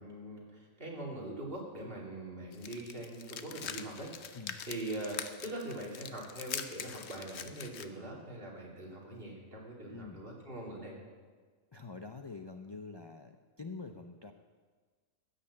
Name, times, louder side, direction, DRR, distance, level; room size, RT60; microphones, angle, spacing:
voice 1, 0.0-4.1 4.7-11.0, right 1 dB, 45° right, -3 dB, 3.0 m, -42 dB
sound 1, 2.5-7.9, left 8 dB, 60° left, 1.0 m, -43 dB
voice 2, 9.9-10.2 11.7-14.3, left 4 dB, 40° left, 6 dB, 0.3 m, -46 dB
14.5 x 6.7 x 8.6 m, 1.5 s
omnidirectional pair, 1.4 m